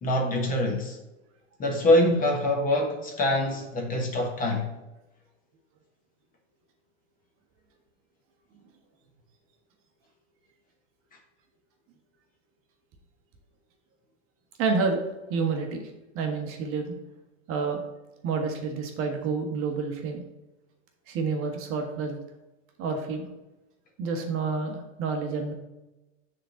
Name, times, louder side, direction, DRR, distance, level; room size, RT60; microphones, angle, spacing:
voice 1, 0.0-1.0 1.6-4.7, left 1 dB, 20° left, 1.2 m, -24 dB
voice 2, 14.6-15.0 15.3-17.0 17.5-17.8 18.2-20.2 21.1-22.2 22.8-23.3 24.0-25.5, right 4 dB, 35° right, 1.3 m, -29 dB
6.6 x 3.8 x 6.3 m
hypercardioid pair, 135°, 38 cm